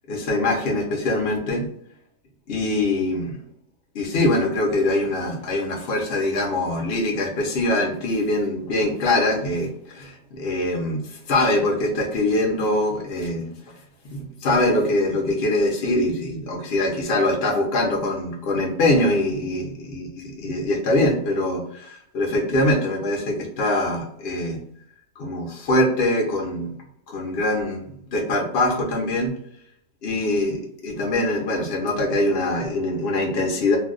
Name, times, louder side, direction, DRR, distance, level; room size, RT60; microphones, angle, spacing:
voice 1, 0.1-1.7 2.5-3.4 3.9-13.5 14.1-24.6 25.2-26.7 27.1-29.3 30.0-33.8, left 1 dB, 50° left, 0 dB, 0.8 m, -23 dB
2.6 x 2.2 x 3.7 m, 0.68 s
omnidirectional pair, 1.6 m